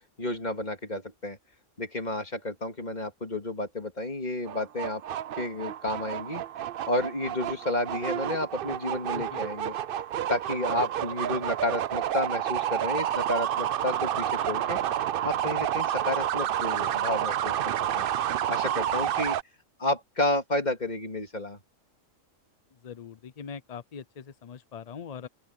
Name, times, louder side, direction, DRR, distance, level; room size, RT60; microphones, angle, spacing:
voice 1, 0.2-1.4 1.8-5.0 5.4-6.4 6.9-9.8 10.3-14.8 15.2-18.0 18.5-19.4 19.8-21.6, left 1 dB, 30° left, 2.7 m, -31 dB
sound 1, 4.5-19.4, right 11 dB, 65° right, 0.5 m, -30 dB
voice 2, 22.8-25.3, left 6 dB, 50° left, 0.4 m, -42 dB
open air
omnidirectional pair, 1.4 m